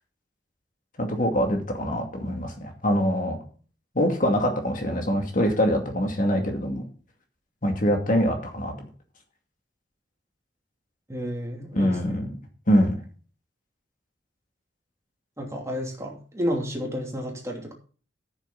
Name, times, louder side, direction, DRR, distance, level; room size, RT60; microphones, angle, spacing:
voice 1, 1.0-3.4 3.9-6.9 7.6-8.7 11.7-12.3 12.7-13.0, equal, 45° left, 3 dB, 2.4 m, -24 dB
voice 2, 11.1-12.2 15.4-17.7, equal, 15° right, 0 dB, 2.8 m, -31 dB
14.0 x 7.2 x 3.9 m, 0.40 s
head